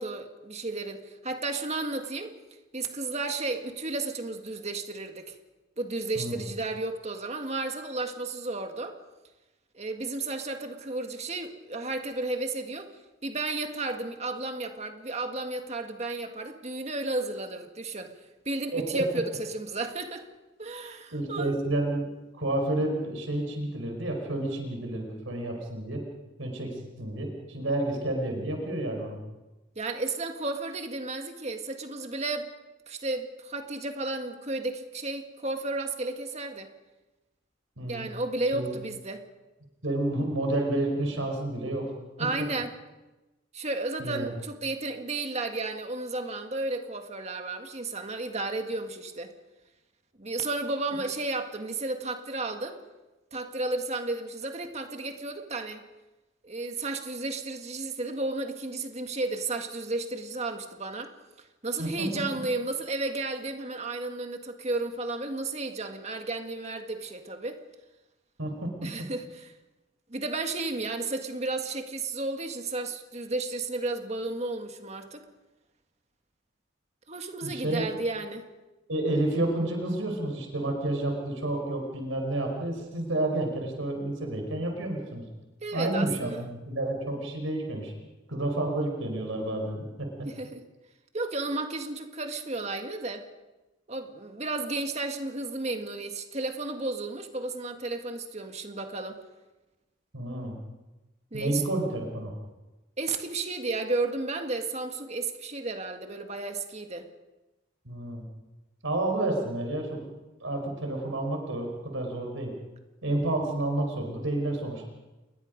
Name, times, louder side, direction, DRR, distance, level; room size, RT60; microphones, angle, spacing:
voice 1, 0.0-2.3 2.7-5.3 5.8-9.0 9.7-12.9 13.2-18.1 18.5-20.3 20.6-21.6 29.8-32.5 32.9-36.7 37.9-39.2 42.2-42.7 43.5-49.3 50.2-52.8 53.3-55.8 56.4-61.1 61.6-67.6 68.8-69.5 70.1-75.2 77.1-78.4 85.6-86.4 90.3-90.6 91.1-93.2 93.9-99.2 101.3-101.6 103.0-107.1, right 2 dB, 35° right, 6 dB, 1.8 m, -33 dB
voice 2, 18.7-19.0 21.1-22.0 22.3-26.0 26.4-29.2 37.8-38.1 38.5-38.7 39.8-41.9 44.0-44.3 61.8-62.2 68.4-68.7 77.4-77.8 78.9-85.2 85.7-87.9 88.3-90.3 100.1-100.5 101.3-102.3 107.8-108.2 108.8-110.0 110.4-112.5 113.0-114.9, right 1 dB, 85° right, 3 dB, 4.9 m, -30 dB
29.0 x 21.5 x 5.3 m, 1.1 s
head